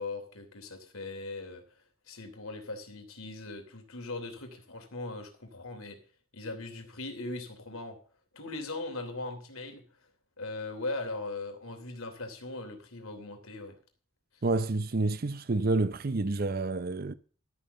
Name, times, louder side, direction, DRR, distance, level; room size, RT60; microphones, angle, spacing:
voice 1, 0.0-1.6 2.1-6.0 6.3-8.0 8.3-9.8 10.4-13.8, left 2 dB, 90° left, 3.1 m, -39 dB
voice 2, 14.4-17.1, right 2 dB, 45° right, 0.6 m, -29 dB
12.5 x 7.2 x 6.6 m
head